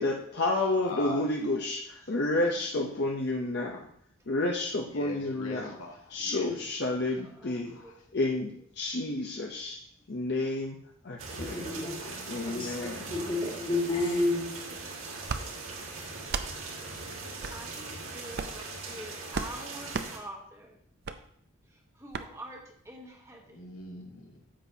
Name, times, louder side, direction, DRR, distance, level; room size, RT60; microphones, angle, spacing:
voice 1, 0.0-3.9 4.3-5.7 6.1-7.8 8.1-9.8 10.1-10.8 11.0-11.7 12.3-13.1, left 2 dB, 50° left, 0 dB, 0.7 m, -30 dB
voice 2, 0.5-1.3 2.9-3.1 4.8-6.5 7.6-8.0 23.5-24.5, left 3 dB, 85° left, 0 dB, 1.6 m, -42 dB
voice 3, 7.4-7.9 9.8-9.9 13.9-14.9 17.1-20.8 21.7-23.7, right 1 dB, 15° right, 1 dB, 1.1 m, -47 dB
sound 1, 11.2-20.2, right 3 dB, 75° right, 1.9 m, -40 dB
voice 4, 11.4-14.5, left 2 dB, 25° left, -1 dB, 1.6 m, -31 dB
sound 2, 15.2-15.4 16.2-16.5 17.4-17.6 18.3-18.6 19.3-19.5 19.9-20.1 21.0-21.2 22.1-22.3, right 5 dB, 50° right, 0.5 m, -33 dB
10.0 x 7.4 x 2.7 m, 0.66 s
head